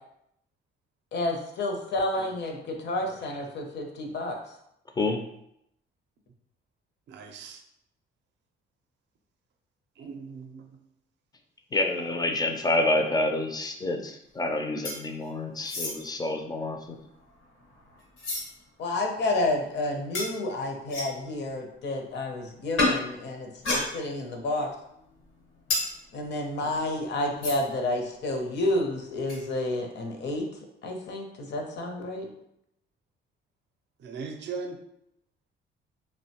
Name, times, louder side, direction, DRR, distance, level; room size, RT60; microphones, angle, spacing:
voice 1, 1.1-4.4 18.8-24.7 26.1-30.5 30.8-32.3, left 2 dB, 60° left, 3 dB, 0.6 m, -30 dB
voice 2, 7.1-7.6 10.0-10.8 26.6-26.7 34.0-34.8, right 5 dB, 60° right, 5 dB, 0.4 m, -39 dB
voice 3, 11.7-17.0, left 2 dB, 20° left, 4 dB, 0.3 m, -28 dB
sound 1, 14.8-15.3 15.6-16.0 16.7-18.5 19.0-19.1 20.1-20.3 20.9-21.3 22.8-23.0 23.5-24.4 24.7-27.8 28.1-28.2 28.4-28.6 29.3-29.4, left 2 dB, 85° left, 1.1 m, -32 dB
2.6 x 2.1 x 2.8 m, 0.77 s
cardioid pair, 90°, 20 cm